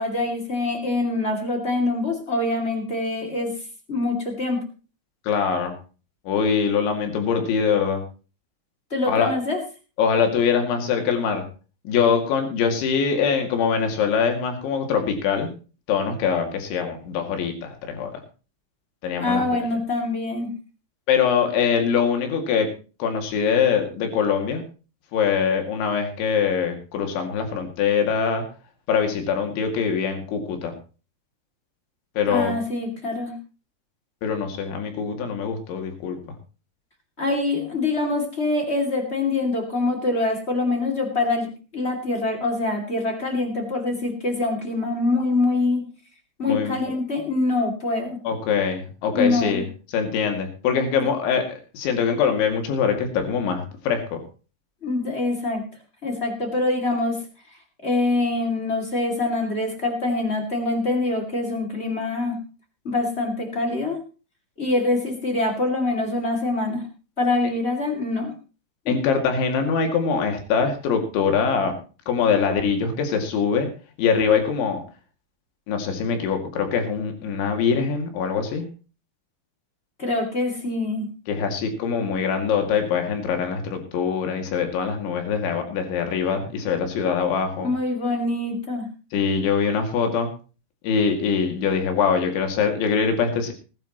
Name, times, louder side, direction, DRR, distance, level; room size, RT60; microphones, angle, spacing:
voice 1, 0.0-3.5 3.9-4.6 8.9-9.6 19.2-20.5 32.3-33.3 37.2-45.8 46.4-48.2 49.1-49.6 54.8-55.6 56.0-57.2 57.8-62.4 62.8-64.0 64.6-66.8 67.2-68.3 68.8-68.9 80.0-81.1 87.6-88.9, left 2 dB, 25° left, 2 dB, 1.4 m, -24 dB
voice 2, 5.3-5.7 6.3-8.0 9.1-9.3 10.0-11.5 11.9-15.5 15.9-18.1 19.0-19.7 21.1-22.7 23.0-24.6 25.1-28.4 28.9-30.7 32.2-32.5 34.2-36.2 46.5-46.7 48.2-49.6 49.9-54.2 68.9-71.7 72.1-73.7 74.0-74.8 75.7-78.7 81.3-87.7 89.1-90.3 90.8-93.5, left 6 dB, 75° left, 5 dB, 4.6 m, -23 dB
19.5 x 12.0 x 3.0 m, 0.34 s
omnidirectional pair, 5.4 m